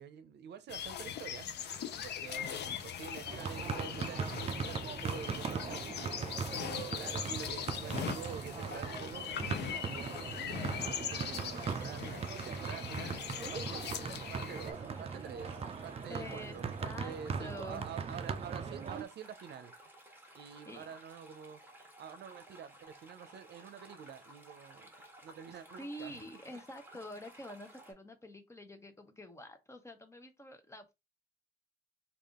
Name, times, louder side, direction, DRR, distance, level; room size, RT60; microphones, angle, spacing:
voice 1, 0.0-1.7 2.0-5.9 6.6-10.1 10.4-13.2 13.5-15.6 15.8-19.7 20.3-21.6 22.0-24.9 25.2-26.2 26.9-27.2, right 8 dB, 85° right, 0.5 m, -48 dB
sound 1, 0.7-14.7, left 8 dB, 85° left, 0.5 m, -41 dB
sound 2, 3.2-19.0, right 5 dB, 35° right, 0.4 m, -39 dB
sound 3, 9.1-27.9, right 1 dB, 10° right, 1.2 m, -56 dB
voice 2, 16.1-17.9 20.4-20.9 25.5-30.9, left 1 dB, 15° left, 0.7 m, -47 dB
3.4 x 2.4 x 3.6 m
wide cardioid pair, 130°, 17 cm